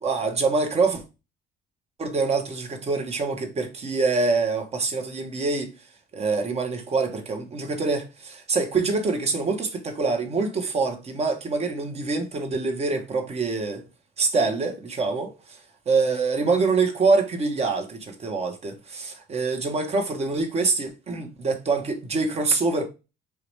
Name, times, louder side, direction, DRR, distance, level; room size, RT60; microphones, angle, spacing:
voice 1, 0.0-1.0 2.0-5.7 6.1-13.9 14.2-15.6 15.9-22.9, right 4 dB, 40° right, 1.2 m, -25 dB
4.8 x 3.1 x 3.3 m
cardioid pair, 110°, 17 cm